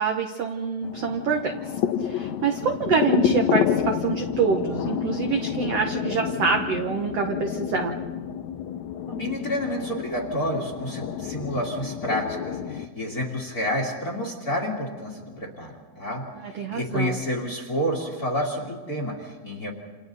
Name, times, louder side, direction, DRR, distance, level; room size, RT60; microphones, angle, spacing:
voice 1, 0.0-1.6 2.0-7.9 16.4-17.2, right 5 dB, 70° right, 3 dB, 1.5 m, -26 dB
sound 1, 0.8-12.9, left 9 dB, 85° left, 1.5 m, -29 dB
voice 2, 9.1-19.7, equal, 30° left, 1 dB, 2.1 m, -29 dB
29.5 x 28.0 x 4.1 m, 1.4 s
omnidirectional pair, 4.4 m